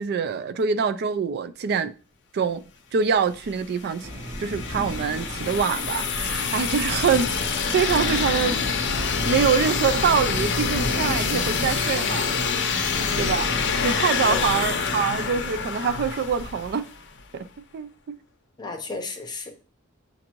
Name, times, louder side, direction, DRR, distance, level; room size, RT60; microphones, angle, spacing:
voice 1, 0.0-1.9 2.3-2.6 2.9-4.1 4.4-8.6 9.2-12.9 13.2-13.5 13.8-16.9 17.3-17.5 17.7-17.9, right 6 dB, 50° right, 0.3 m, -25 dB
sound 1, 3.4-17.1, left 5 dB, 55° left, 0.6 m, -26 dB
sound 2, 4.0-11.4, equal, 20° right, 1.8 m, -37 dB
voice 2, 12.9-13.5 14.3-14.7 18.6-19.5, left 3 dB, 20° left, 0.7 m, -34 dB
7.0 x 2.5 x 2.9 m
head